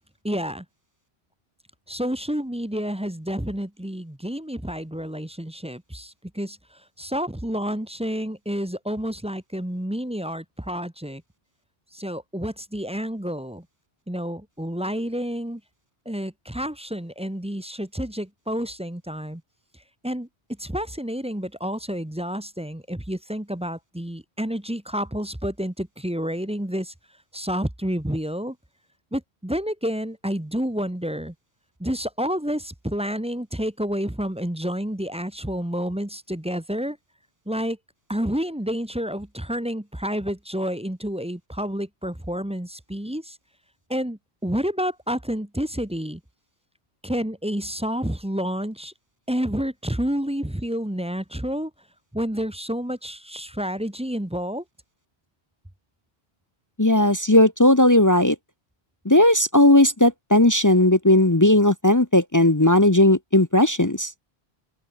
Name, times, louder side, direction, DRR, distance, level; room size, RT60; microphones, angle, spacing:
voice 1, 0.2-0.6 1.9-6.6 7.0-11.2 11.9-13.6 14.1-15.6 16.1-19.4 20.0-20.3 20.6-26.9 27.3-28.5 29.1-31.3 31.8-37.0 37.5-37.8 38.1-43.3 43.9-46.2 47.0-48.9 49.3-51.7 52.1-54.6, equal, 5° right, 1.1 m, -29 dB
voice 2, 56.8-58.4 59.0-64.1, left 1 dB, 20° left, 0.9 m, -17 dB
omnidirectional pair, 1.1 m